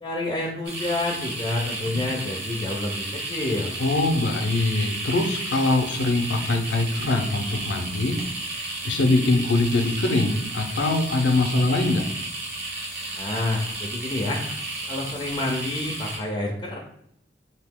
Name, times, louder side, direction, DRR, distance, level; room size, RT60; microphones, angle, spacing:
voice 1, 0.0-3.7 13.1-14.4 14.9-16.8, left 2 dB, 25° left, -1 dB, 0.4 m, -28 dB
sound 1, 0.6-16.2, right 2 dB, 60° right, 0.8 m, -33 dB
voice 2, 3.8-8.2 8.8-12.1, left 2 dB, 75° left, 5 dB, 0.5 m, -23 dB
2.8 x 2.7 x 3.5 m, 0.75 s
head